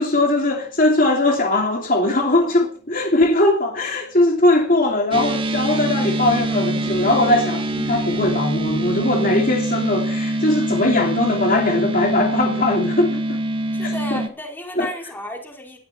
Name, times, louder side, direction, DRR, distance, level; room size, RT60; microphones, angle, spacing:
voice 1, 0.0-13.4 13.8-14.2 14.8-14.9, left 2 dB, 45° left, 2.9 m, -20 dB
sound 1, 5.1-14.3, right 1 dB, 25° right, 1.8 m, -24 dB
voice 2, 13.7-15.8, left 1 dB, 10° left, 4.9 m, -33 dB
21.0 x 14.0 x 4.4 m
head